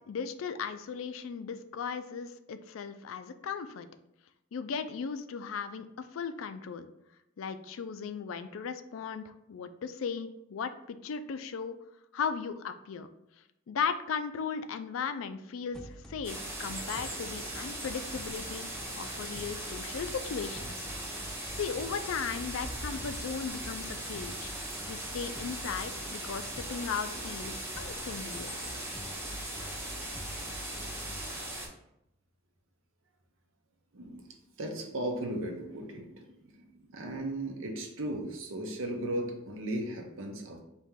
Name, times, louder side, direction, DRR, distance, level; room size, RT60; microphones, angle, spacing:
voice 1, 0.1-3.9 4.5-6.9 7.4-11.8 12.1-13.1 13.7-18.7 19.0-20.9 21.6-24.5 24.9-28.5, left 6 dB, 80° left, 10 dB, 0.4 m, -37 dB
sound 1, 15.7-31.4, equal, 5° left, 0.4 m, -48 dB
sound 2, 16.2-31.7, right 1 dB, 10° right, 0.9 m, -39 dB
voice 2, 33.9-40.6, right 1 dB, 70° right, 2 dB, 0.8 m, -36 dB
4.2 x 2.9 x 3.6 m, 0.84 s
head